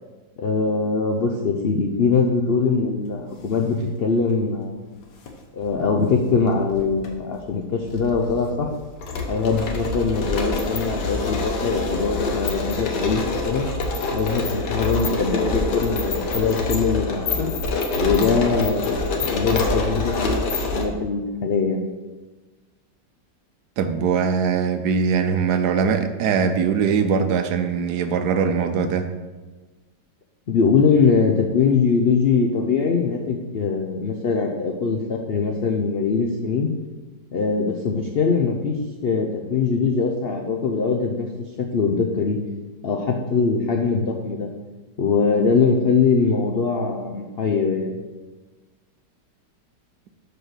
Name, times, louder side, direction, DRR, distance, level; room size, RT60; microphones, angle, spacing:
voice 1, 0.4-4.8 5.5-8.7 9.3-13.7 14.1-17.5 18.0-21.8 30.5-36.7 37.3-41.3 41.6-42.4 42.8-44.5 45.0-48.0, left 5 dB, 90° left, 2 dB, 0.5 m, -22 dB
sound 1, 5.0-5.3 6.3-7.1 7.4-7.5 7.9-20.8, left 3 dB, 75° left, 1.6 m, -26 dB
voice 2, 23.8-29.1, right 6 dB, 70° right, 8 dB, 1.2 m, -21 dB
6.0 x 5.3 x 6.4 m, 1.3 s
omnidirectional pair, 1.9 m